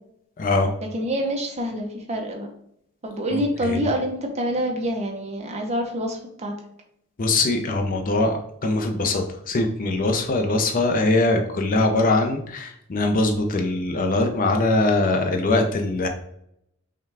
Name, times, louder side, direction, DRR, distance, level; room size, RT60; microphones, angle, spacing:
voice 1, 0.4-0.7 3.3-3.8 7.2-16.1, left 2 dB, 40° left, 4 dB, 0.5 m, -22 dB
voice 2, 0.9-2.5 3.0-6.5, equal, 30° right, 2 dB, 0.7 m, -26 dB
5.6 x 2.3 x 3.3 m, 0.73 s
head